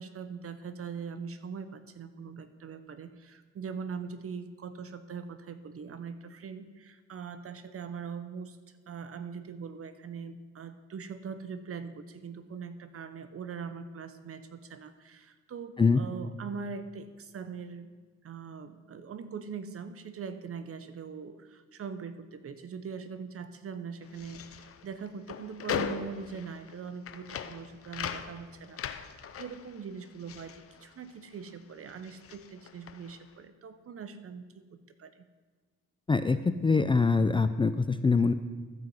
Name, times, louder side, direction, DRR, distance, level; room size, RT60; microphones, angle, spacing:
voice 1, 0.0-8.6 8.9-17.9 18.2-29.1 29.4-35.2, right 6 dB, 50° right, 10 dB, 1.0 m, -42 dB
sound 1, 24.0-31.5 31.8-33.3, left 8 dB, 50° left, 0.7 m, -40 dB
voice 2, 36.1-38.3, left 4 dB, 15° left, 11 dB, 0.4 m, -24 dB
13.0 x 5.5 x 7.8 m, 1.4 s
cardioid pair, 90°, 30 cm